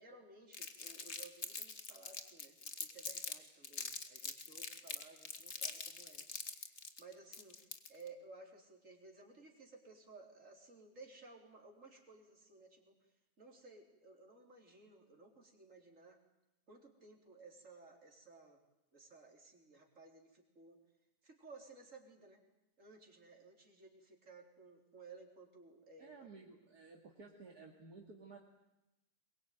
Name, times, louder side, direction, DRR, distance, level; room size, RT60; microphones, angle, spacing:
voice 1, 0.0-7.6 7.9-16.2 16.7-18.6 18.9-20.8 21.2-22.4 22.8-26.4, right 3 dB, 50° right, 1 dB, 4.2 m, -58 dB
Crumpling crinkling, 0.5-3.3 3.6-8.1, left 5 dB, 45° left, 1.9 m, -44 dB
voice 2, 26.0-28.4, right 4 dB, 65° right, 0 dB, 2.8 m, -55 dB
22.5 x 22.0 x 9.4 m, 0.92 s
omnidirectional pair, 1.8 m